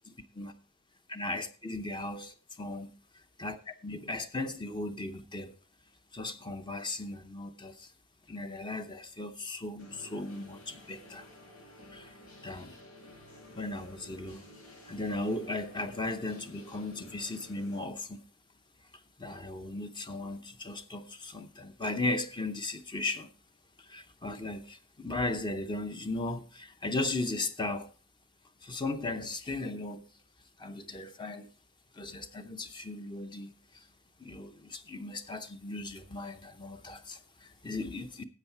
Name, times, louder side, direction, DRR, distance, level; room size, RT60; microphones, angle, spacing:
voice 1, 1.1-2.2 2.5-2.9 3.4-5.5 6.1-7.9 8.3-11.3 11.9-12.2 12.4-12.8 13.5-14.4 14.8-18.2 19.2-23.3 23.8-27.9 28.6-30.1 30.6-31.5 31.9-33.9 34.2-38.2, left 2 dB, 20° left, 0.7 m, -37 dB
sound 1, 9.8-17.8, left 1 dB, 90° left, 7.5 m, -53 dB
13.0 x 7.9 x 4.5 m
head